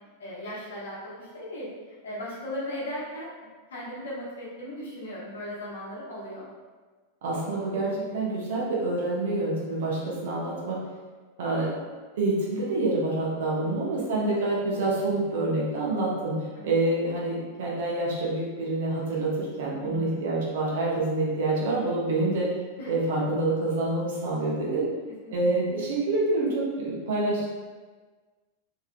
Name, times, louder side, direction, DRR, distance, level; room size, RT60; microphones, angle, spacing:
voice 1, 0.2-3.3 3.7-6.5 13.6-14.2 16.5-16.7 19.8-20.3 22.8-22.9 25.2-25.4 25.7-25.9, equal, 60° left, -6 dB, 0.9 m, -37 dB
voice 2, 7.2-10.8 11.4-11.7 12.2-16.4 16.6-22.5 22.9-24.9 25.3-27.5, right 2 dB, 55° right, -5 dB, 0.7 m, -27 dB
3.3 x 2.7 x 2.2 m, 1.4 s
figure-of-eight pair, 90°, 0 cm